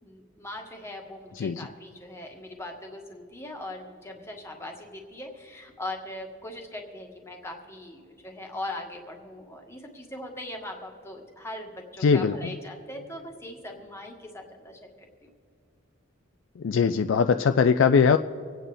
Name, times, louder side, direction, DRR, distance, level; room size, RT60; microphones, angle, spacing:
voice 1, 0.0-15.3, left 1 dB, 10° left, 1 dB, 1.5 m, -40 dB
voice 2, 12.0-12.5 16.6-18.2, left 6 dB, 60° left, 9 dB, 0.3 m, -21 dB
26.0 x 8.9 x 3.4 m, 2.3 s
head